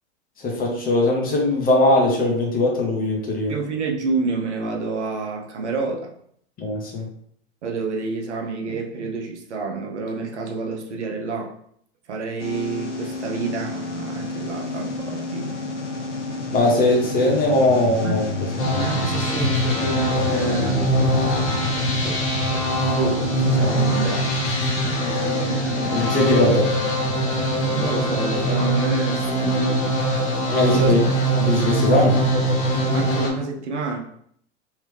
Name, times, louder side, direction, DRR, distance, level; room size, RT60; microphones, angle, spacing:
voice 1, 0.4-3.5 6.6-7.1 16.5-18.5 25.1-25.2 25.9-26.7 30.5-31.0 31.4-32.2, left 2 dB, 25° left, -1 dB, 1.3 m, -20 dB
voice 2, 3.5-6.1 7.6-11.5 12.1-15.5 18.0-18.2 18.7-20.8 22.0-22.2 22.9-24.3 27.7-30.0 30.6-30.9 32.9-34.0, right 3 dB, 75° right, 1 dB, 1.0 m, -28 dB
sound 1, 12.4-28.7, left 2 dB, 85° left, 1.1 m, -30 dB
sound 2, 18.6-33.3, right 1 dB, 40° left, 1.7 m, -22 dB
3.5 x 3.2 x 3.4 m, 0.66 s
hypercardioid pair, 100°, 35 cm